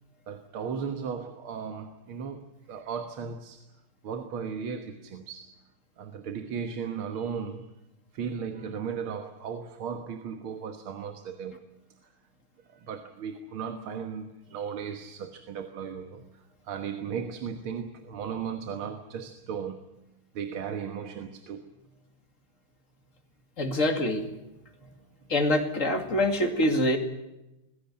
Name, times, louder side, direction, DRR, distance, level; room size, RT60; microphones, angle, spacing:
voice 1, 0.3-3.6 4.0-5.6 6.0-7.8 8.1-11.6 12.7-19.9 20.3-21.7 24.8-25.0, right 6 dB, 75° right, 2.1 m, -36 dB
voice 2, 23.6-24.3 25.3-27.0, left 1 dB, 35° left, 2.6 m, -25 dB
21.0 x 16.0 x 9.8 m
omnidirectional pair, 2.4 m